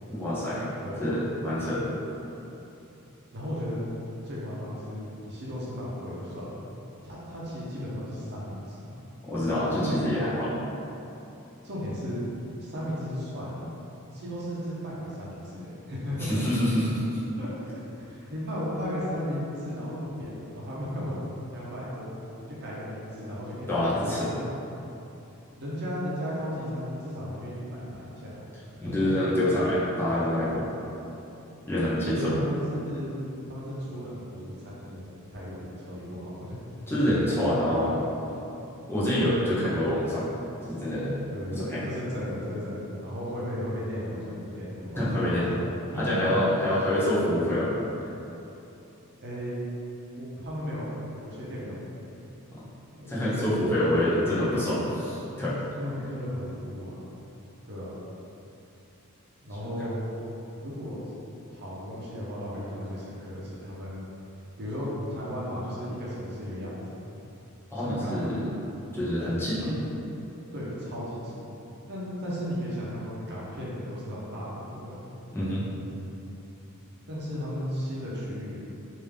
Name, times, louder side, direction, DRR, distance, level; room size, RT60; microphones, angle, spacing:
voice 1, 0.1-0.7 1.0-1.9 9.2-10.6 16.2-17.2 23.7-24.3 28.8-30.7 31.7-32.3 36.9-38.0 38.9-40.3 40.7-41.1 41.5-41.8 45.0-45.5 45.9-47.7 52.5-52.6 53.1-54.8 55.1-55.6 59.6-59.8 67.7-68.4 68.9-69.7 75.3-75.6, left 1 dB, 10° left, -10 dB, 0.8 m, -26 dB
voice 2, 3.3-3.8 4.2-6.6 7.0-9.0 9.8-10.0 11.6-12.3 12.6-13.8 14.1-16.4 17.4-17.5 18.0-21.2 21.5-22.1 22.5-24.3 25.6-28.4 28.7-29.2 32.1-33.2 33.5-35.0 35.3-36.8 41.3-45.6 45.9-46.3 49.2-49.5 50.2-50.9 51.2-51.8 52.1-52.3 53.0-55.3 55.7-57.0 57.7-57.9 59.4-60.0 60.6-61.0 61.5-64.0 64.6-67.1 67.7-68.5 69.5-69.8 70.5-71.5 71.9-75.0 77.1-78.6, equal, 50° right, -7 dB, 0.8 m, -35 dB
3.5 x 2.7 x 3.4 m, 2.9 s
head